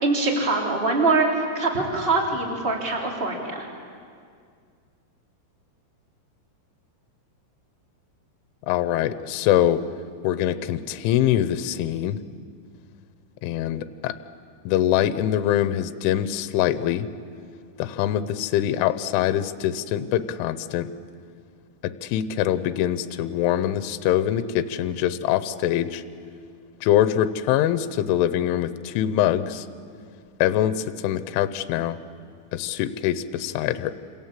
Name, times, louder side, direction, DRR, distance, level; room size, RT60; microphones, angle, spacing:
voice 1, 0.0-3.7, right 3 dB, 15° right, 0 dB, 3.0 m, -23 dB
voice 2, 8.7-9.8 10.2-12.2 13.4-14.1 14.7-17.1 17.8-20.9 21.8-26.0 26.8-29.7 30.4-32.0 32.5-33.9, left 11 dB, 85° left, 12 dB, 3.3 m, -23 dB
27.5 x 27.0 x 7.5 m, 2.2 s
omnidirectional pair, 5.5 m